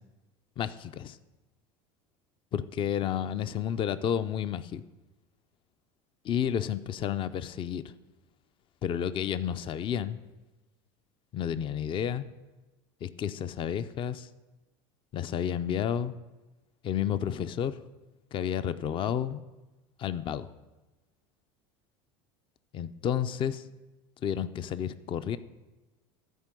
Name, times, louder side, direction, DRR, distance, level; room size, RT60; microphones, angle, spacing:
voice 1, 0.6-1.2 2.5-4.8 6.2-7.9 8.8-10.2 11.3-12.2 13.0-14.3 15.1-16.1 16.8-17.8 18.3-19.4 20.0-20.5 22.7-23.6 24.2-25.4, left 9 dB, 40° left, 13 dB, 0.5 m, -31 dB
13.0 x 4.5 x 7.5 m, 1.1 s
supercardioid pair, 100°, 13 cm